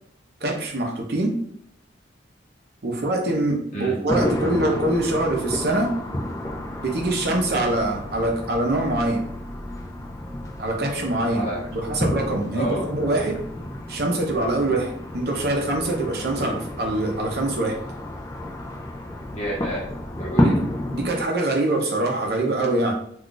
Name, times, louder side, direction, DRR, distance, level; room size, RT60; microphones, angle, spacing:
voice 1, 0.4-1.4 2.8-5.9 6.8-9.3 10.6-13.4 13.9-17.8 20.4-20.6 20.9-22.9, right 2 dB, 55° right, 1 dB, 0.7 m, -24 dB
sound 1, 4.1-21.2, left 1 dB, 15° left, 0.3 m, -30 dB
voice 2, 11.3-11.7 12.5-12.9 19.3-20.5, equal, 35° left, -4 dB, 0.9 m, -30 dB
2.4 x 2.3 x 3.8 m, 0.65 s
head